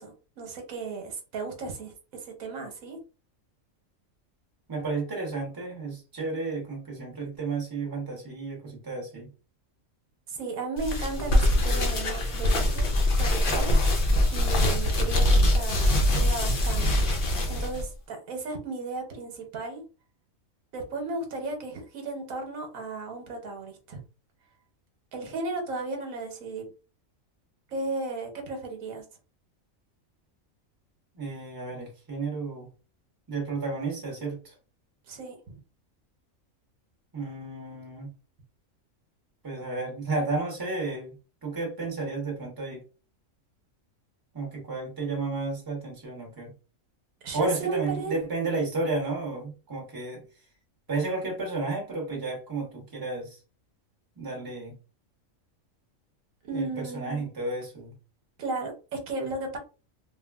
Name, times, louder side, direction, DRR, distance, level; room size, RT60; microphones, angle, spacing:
voice 1, 0.0-1.9 2.2-3.0 10.3-14.0 14.3-17.0 17.5-19.8 20.7-24.0 25.1-26.6 27.7-29.0 35.1-35.6 47.2-48.2 56.5-57.3 58.4-59.6, right 3 dB, 90° right, 4 dB, 1.2 m, -35 dB
voice 2, 4.7-9.3 31.1-32.7 33.3-34.5 37.1-38.1 39.4-41.1 41.4-42.8 44.3-46.5 47.3-50.2 50.9-53.4 54.2-54.7 56.5-57.9, right 3 dB, 20° right, 0 dB, 0.9 m, -32 dB
sound 1, 10.8-17.8, left 1 dB, 55° left, 0.7 m, -23 dB
3.2 x 2.3 x 2.3 m, 0.33 s
omnidirectional pair, 1.4 m